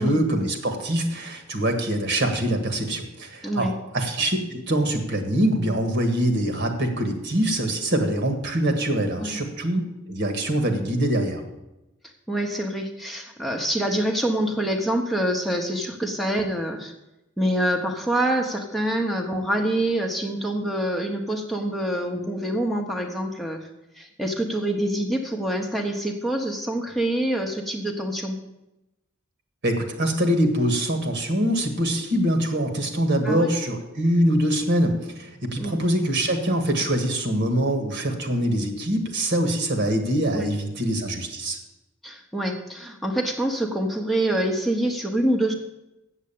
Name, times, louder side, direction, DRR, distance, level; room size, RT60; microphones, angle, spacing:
voice 1, 0.0-9.8 10.1-11.4 29.6-41.6, right 1 dB, 60° right, 6 dB, 1.8 m, -24 dB
voice 2, 12.3-16.9 17.4-23.7 23.9-28.4 33.2-33.5 35.6-35.8 40.3-40.5 42.0-45.5, right 1 dB, ahead, 1 dB, 0.9 m, -26 dB
8.0 x 7.5 x 8.6 m, 0.94 s
head